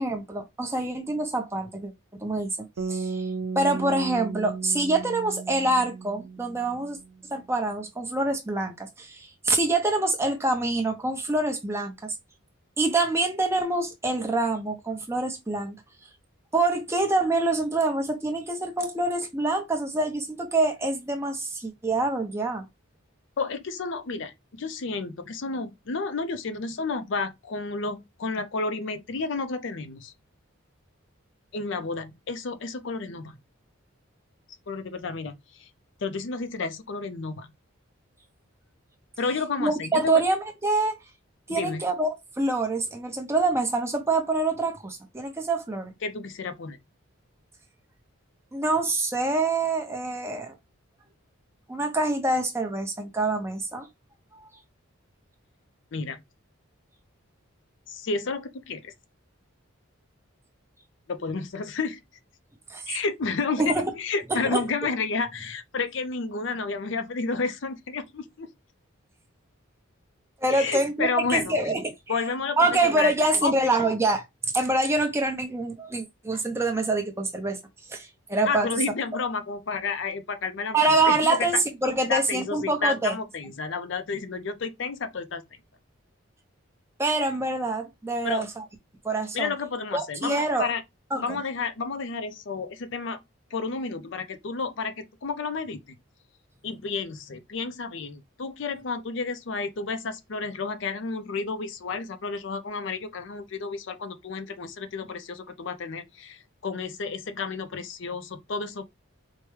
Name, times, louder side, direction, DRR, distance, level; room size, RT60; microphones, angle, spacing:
voice 1, 0.0-1.9 2.2-2.5 2.9-3.3 3.6-7.0 7.3-12.1 12.8-15.8 16.5-22.7 39.6-40.9 41.5-45.9 48.5-50.5 51.7-53.9 54.3-54.5 62.7-62.8 63.6-63.9 64.3-64.6 70.4-72.2 72.6-74.2 74.5-77.6 77.9-78.7 80.7-83.1 87.0-88.6 89.0-89.5 89.9-90.7 91.1-91.4, right 2 dB, 10° right, 0.6 m, -26 dB
sound 1, 2.8-7.0, right 5 dB, 85° right, 0.4 m, -34 dB
voice 2, 23.4-30.1 31.5-33.3 34.7-35.7 36.0-37.5 39.2-40.2 41.5-41.8 46.0-46.8 55.9-56.2 57.9-58.9 61.1-62.0 62.9-68.5 70.5-71.5 72.1-72.6 72.8-73.1 73.4-73.6 78.5-81.5 82.1-85.4 88.2-88.4 89.3-90.8 91.2-93.2 93.5-95.8 96.6-108.8, left 4 dB, 55° left, 0.5 m, -31 dB
4.6 x 2.1 x 3.2 m
head